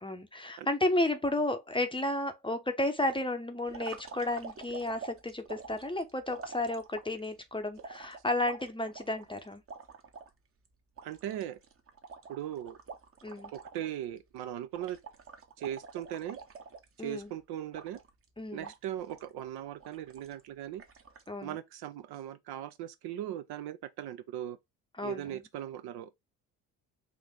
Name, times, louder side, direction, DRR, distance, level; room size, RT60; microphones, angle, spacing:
voice 1, 0.0-9.6 13.2-13.5 17.0-17.3 18.4-18.7 21.3-21.6 25.0-25.4, left 1 dB, 10° left, 0.7 m, -32 dB
sound 1, 3.7-7.3 7.8-10.3 10.7-10.8 11.0-13.9 14.2-14.4 14.7-17.2 17.7-18.2 18.6-19.3 19.8-20.4 20.8-21.3, right 5 dB, 25° right, 0.9 m, -47 dB
voice 2, 11.0-11.6 12.3-12.8 13.5-15.0 15.6-16.4 17.0-18.0 18.5-20.8 21.4-24.6 25.0-26.2, right 11 dB, 50° right, 0.6 m, -39 dB
4.5 x 2.5 x 3.6 m
hypercardioid pair, 55°, 49 cm